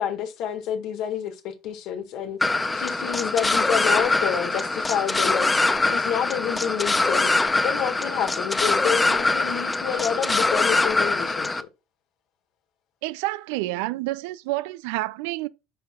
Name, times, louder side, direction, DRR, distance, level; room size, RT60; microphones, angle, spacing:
voice 1, 0.0-2.4 2.7-11.7, left 9 dB, 60° left, 1.8 m, -28 dB
sound 1, 2.4-11.6, left 3 dB, 15° left, 0.7 m, -23 dB
voice 2, 13.0-15.5, right 19 dB, 80° right, 0.5 m, -29 dB
9.8 x 5.7 x 2.4 m
supercardioid pair, 120°, 0 cm